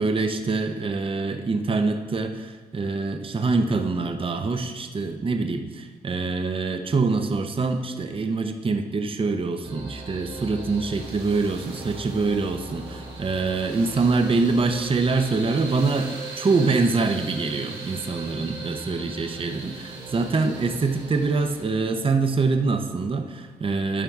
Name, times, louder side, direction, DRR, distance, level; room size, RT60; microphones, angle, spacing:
voice 1, 0.0-24.0, right 3 dB, 35° right, 6 dB, 0.6 m, -25 dB
sound 1, 9.6-21.6, right 3 dB, 90° right, 1.9 m, -39 dB
11.0 x 4.5 x 3.5 m, 1.4 s
cardioid pair, 70°, 16 cm